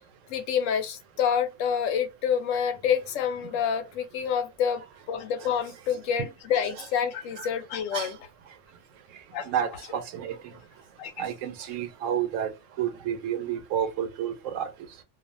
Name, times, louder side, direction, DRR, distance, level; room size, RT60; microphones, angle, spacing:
voice 1, 0.3-8.2 9.3-9.5 11.0-11.3, left 8 dB, 85° left, 0.9 m, -28 dB
voice 2, 9.5-10.5 11.2-12.5 12.8-14.7, right 9 dB, 85° right, 0.9 m, -30 dB
2.4 x 2.4 x 2.5 m
omnidirectional pair, 1.3 m